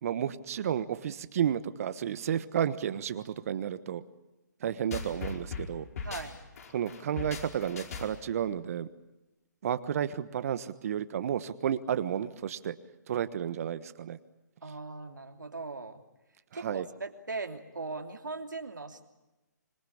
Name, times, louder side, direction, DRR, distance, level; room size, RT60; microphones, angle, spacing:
voice 1, 0.0-4.0 4.6-5.9 6.7-8.9 9.6-12.8 13.1-14.2 16.5-16.9, right 9 dB, 50° right, 13 dB, 1.3 m, -32 dB
sound 1, 4.9-8.4, left 5 dB, 55° left, 4.8 m, -39 dB
voice 2, 6.0-6.4 14.6-16.0 16.5-19.1, right 3 dB, 90° right, 5 dB, 3.1 m, -39 dB
26.0 x 22.0 x 8.7 m, 1.0 s
figure-of-eight pair, 140°, 10 cm